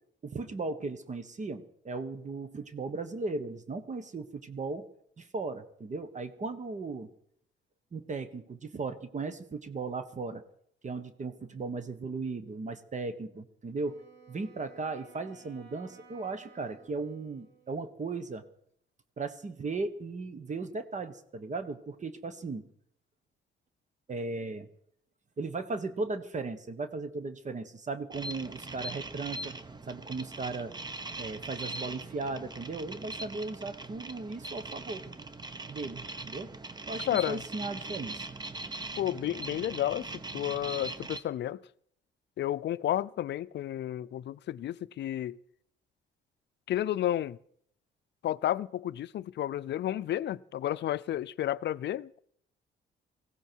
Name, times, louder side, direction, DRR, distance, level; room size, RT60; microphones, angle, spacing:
voice 1, 0.2-4.9 5.2-7.1 7.9-10.4 10.8-14.0 14.3-18.4 19.2-22.6 24.1-24.7 25.4-29.5 29.9-30.7 31.2-35.0 35.7-36.5 36.9-38.3, right 3 dB, 35° right, 1.3 m, -37 dB
Wind instrument woodwind instrument, 13.7-17.9, right 5 dB, 60° right, 5.3 m, -57 dB
sound 1, 28.1-41.2, right 2 dB, 20° right, 1.0 m, -41 dB
voice 2, 37.1-37.4 39.0-41.6 42.4-45.4 46.7-47.4 48.2-52.2, left 12 dB, 60° left, 0.5 m, -32 dB
19.5 x 16.0 x 4.6 m
cardioid pair, 90°, 20 cm